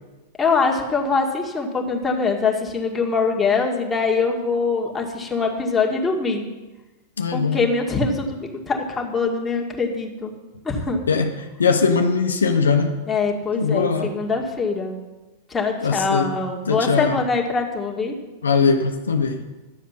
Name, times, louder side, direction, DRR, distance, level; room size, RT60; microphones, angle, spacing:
voice 1, 0.4-6.4 7.3-10.3 10.6-11.0 13.1-15.0 15.5-18.1, left 4 dB, 15° left, 0 dB, 2.0 m, -23 dB
voice 2, 7.2-7.6 11.1-11.3 11.6-12.9 13.6-14.1 15.8-16.3 16.7-17.2 18.4-19.4, left 5 dB, 85° left, 5 dB, 1.0 m, -20 dB
11.5 x 7.3 x 5.8 m, 1.2 s
hypercardioid pair, 100°, 0 cm